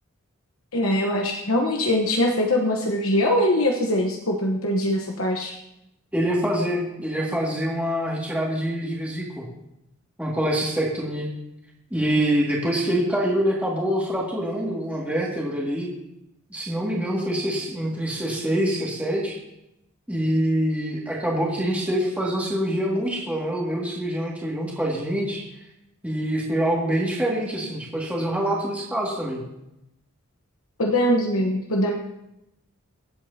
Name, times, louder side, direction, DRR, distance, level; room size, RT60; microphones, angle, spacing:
voice 1, 0.7-5.5 30.8-31.9, left 1 dB, 70° left, 1 dB, 1.1 m, -22 dB
voice 2, 6.1-9.4 10.2-11.3 11.9-15.9 16.5-19.4 20.1-25.5 26.0-29.4, equal, 5° right, -4 dB, 2.1 m, -25 dB
24.5 x 8.1 x 2.8 m, 0.88 s
head